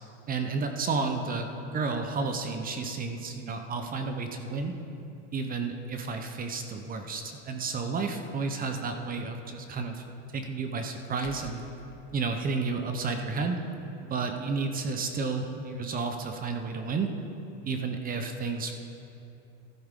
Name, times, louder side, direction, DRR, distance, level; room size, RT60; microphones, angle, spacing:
voice 1, 0.3-1.5 1.7-4.8 5.3-10.0 10.3-11.6 12.1-13.6 14.0-17.1 17.6-18.7, right 4 dB, 25° right, 6 dB, 0.7 m, -31 dB
sound 1, 7.3-7.4 10.0-10.1 11.2-12.8, left 7 dB, 50° left, 0.9 m, -49 dB
13.0 x 12.0 x 3.7 m, 2.9 s
supercardioid pair, 140°, 35 cm